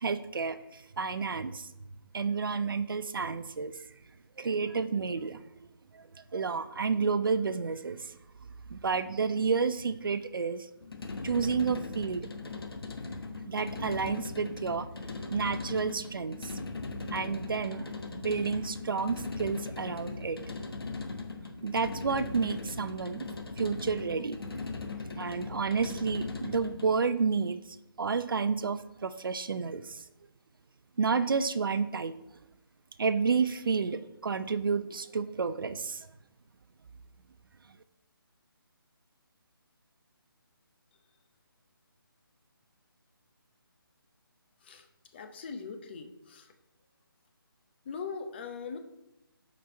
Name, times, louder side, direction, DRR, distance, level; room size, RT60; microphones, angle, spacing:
voice 1, 0.0-1.7 2.1-3.7 4.4-5.4 5.9-6.1 6.3-8.2 8.7-10.7 11.2-12.3 13.5-16.5 17.1-20.4 21.6-23.3 23.6-24.4 25.2-27.6 28.0-30.0 31.0-32.2 33.0-36.1, right 5 dB, 65° right, 13 dB, 0.6 m, -30 dB
sound 1, 10.8-27.0, left 3 dB, 75° left, 1.1 m, -39 dB
voice 2, 45.1-46.5 47.9-48.8, left 5 dB, 25° left, 6 dB, 0.7 m, -40 dB
6.6 x 5.3 x 4.5 m, 0.91 s
figure-of-eight pair, 160°, 12 cm